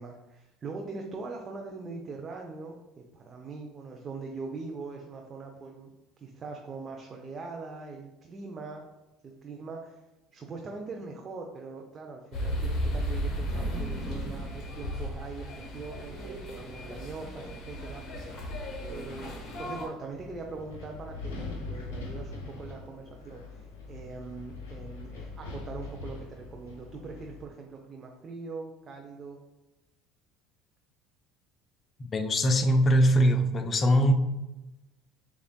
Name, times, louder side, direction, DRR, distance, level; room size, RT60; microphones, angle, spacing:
voice 1, 0.0-5.9 6.2-8.8 9.4-10.0 10.3-18.0 18.9-29.4, right 4 dB, 35° right, 1 dB, 0.5 m, -42 dB
sound 1, 12.3-19.9, equal, 50° left, 1.2 m, -34 dB
Wind, 20.1-27.4, left 3 dB, 80° left, 0.6 m, -42 dB
voice 2, 32.1-34.1, equal, 35° left, 7 dB, 0.5 m, -22 dB
6.5 x 2.5 x 2.2 m, 1.0 s
hypercardioid pair, 70°, 0 cm